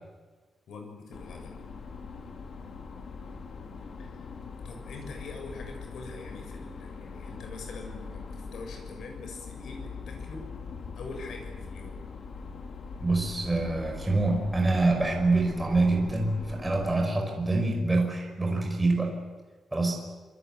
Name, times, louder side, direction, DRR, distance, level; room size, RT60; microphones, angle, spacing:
voice 1, 0.7-1.5 4.0-4.3 4.6-10.5 11.0-12.0, left 3 dB, 70° left, 4 dB, 7.3 m, -43 dB
sound 1, 1.1-16.9, left 5 dB, 50° left, 2.9 m, -42 dB
voice 2, 13.0-19.2 19.7-20.0, right 2 dB, 10° right, 1 dB, 5.1 m, -26 dB
27.0 x 26.0 x 8.1 m, 1.4 s
wide cardioid pair, 165°, 0 cm